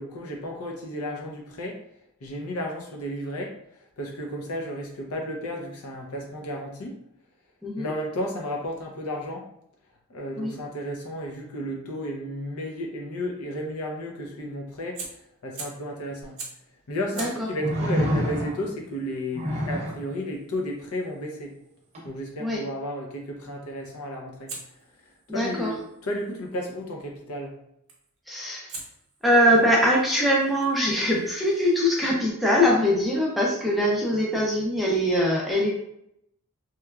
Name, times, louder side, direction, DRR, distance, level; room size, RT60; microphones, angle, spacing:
voice 1, 0.0-1.8 2.2-3.5 3.8-7.0 7.8-9.5 10.1-15.0 15.4-16.4 16.9-21.5 22.0-24.5 25.3-27.5, equal, 75° left, 1 dB, 0.6 m, -33 dB
Fire, 14.9-15.9 16.4-16.7 17.1-22.0 24.5-26.6 27.9-28.2 28.7-32.1, right 4 dB, 65° right, 0.7 m, -45 dB
sound 1, 16.3-16.4 17.6-18.8 19.3-20.0 21.9-22.1, equal, 30° right, 0.7 m, -27 dB
voice 2, 17.1-17.5 22.4-22.6 25.3-25.7 28.3-28.7 29.2-35.7, equal, ahead, -4 dB, 0.4 m, -22 dB
2.9 x 2.3 x 2.3 m, 0.76 s
head